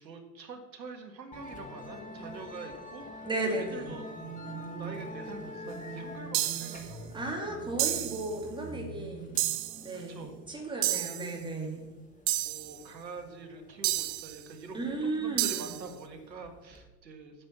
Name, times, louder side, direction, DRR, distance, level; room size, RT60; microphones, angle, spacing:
voice 1, 0.0-4.1 4.7-7.5 9.9-11.4 12.4-17.5, right 3 dB, 85° right, 6 dB, 1.7 m, -45 dB
Musical instrument, 1.3-16.8, right 1 dB, 15° left, 1.7 m, -45 dB
voice 2, 3.2-4.0 7.1-9.5 9.8-11.8 14.7-15.7, right 2 dB, 10° right, 1 dB, 2.2 m, -35 dB
sound 1, 6.3-6.9 7.8-8.3 9.4-9.9 10.8-11.3 12.3-12.8 13.8-14.4 15.4-15.8, right 16 dB, 35° right, 0.6 m, -30 dB
8.7 x 5.6 x 7.2 m, 1.2 s
hypercardioid pair, 95°, 50 cm